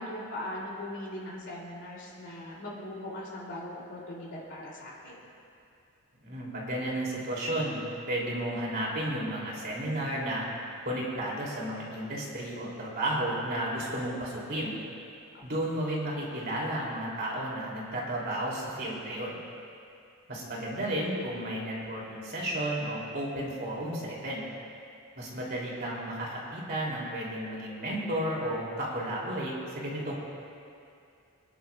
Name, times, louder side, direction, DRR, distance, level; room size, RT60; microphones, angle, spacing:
voice 1, 0.0-5.2 15.3-15.4, left 1 dB, 55° left, -4 dB, 2.8 m, -40 dB
voice 2, 6.2-10.4 10.8-14.8 15.4-19.4 20.3-24.4 25.2-30.1, right 1 dB, 45° right, -4 dB, 2.8 m, -33 dB
26.0 x 10.0 x 2.3 m, 2.5 s
head